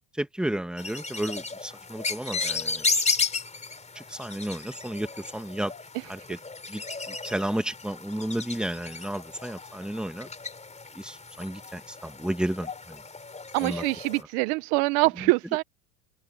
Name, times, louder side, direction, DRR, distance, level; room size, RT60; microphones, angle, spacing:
voice 1, 0.2-2.8 3.9-5.7 6.1-6.4 6.7-6.8 7.2-10.3 10.9-13.0 13.6-13.8, right 1 dB, ahead, 1.5 m, -32 dB
sound 1, 0.8-14.2, left 4 dB, 15° left, 4.0 m, -34 dB
voice 2, 13.5-15.6, right 25 dB, 75° right, 0.8 m, -24 dB
supercardioid pair, 115°, 46 cm